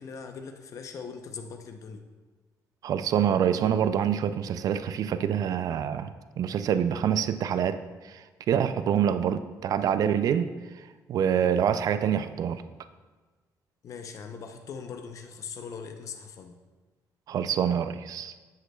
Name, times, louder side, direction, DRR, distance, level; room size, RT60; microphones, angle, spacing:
voice 1, 0.0-2.0 13.8-16.6, left 5 dB, 50° left, 5 dB, 0.7 m, -40 dB
voice 2, 2.8-10.5 11.1-12.6 17.3-18.3, right 8 dB, 60° right, 12 dB, 0.4 m, -26 dB
10.0 x 8.1 x 2.3 m, 1.3 s
cardioid pair, 115°, 7 cm